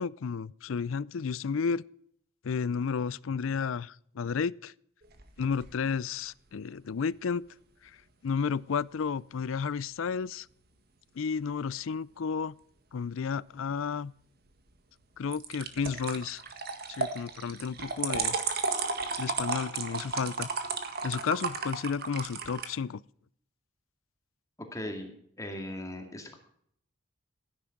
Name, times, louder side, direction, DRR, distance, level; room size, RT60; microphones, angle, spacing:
voice 1, 0.0-1.8 2.4-4.7 5.4-7.4 7.8-7.9 8.2-10.5 11.2-12.6 12.9-14.1 15.2-16.4 16.9-18.4 19.2-20.5 21.0-23.0, left 6 dB, 75° left, 0.4 m, -32 dB
sound 1, 5.0-5.7 15.3-22.7, right 4 dB, 50° right, 1.7 m, -34 dB
voice 2, 24.6-25.1 25.4-26.4, left 1 dB, 15° left, 2.2 m, -38 dB
15.0 x 10.0 x 5.9 m
head